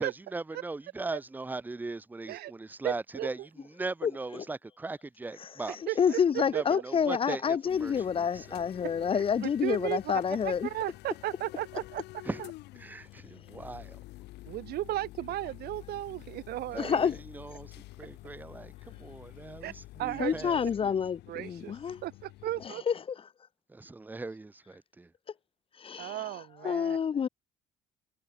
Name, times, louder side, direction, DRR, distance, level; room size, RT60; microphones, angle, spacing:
voice 1, 0.0-3.4 3.8-5.8 6.5-8.6 12.3-12.4 12.8-14.0 16.7-20.9 23.7-25.1, right 3 dB, 10° right, 0.7 m, -39 dB
voice 2, 2.8-3.5 5.7-6.8 9.1-12.5 14.4-17.0 19.6-19.7 20.0-20.5 21.3-22.8 26.0-27.0, right 15 dB, 70° right, 0.9 m, -36 dB
voice 3, 5.4-10.7 16.8-17.2 20.2-22.0 22.6-23.0 25.8-27.3, left 7 dB, 35° left, 0.6 m, -28 dB
sound 1, 7.7-22.7, left 18 dB, 85° left, 5.1 m, -49 dB
cardioid pair, 110°, 17 cm